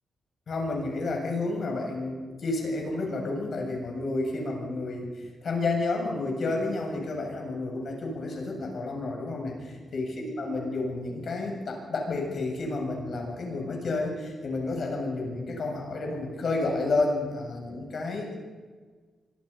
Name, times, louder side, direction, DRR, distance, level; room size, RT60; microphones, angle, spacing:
voice 1, 0.5-9.6 9.9-18.3, left 2 dB, 50° left, 1 dB, 7.2 m, -30 dB
25.0 x 24.0 x 5.6 m, 1.4 s
wide cardioid pair, 130°, 0 cm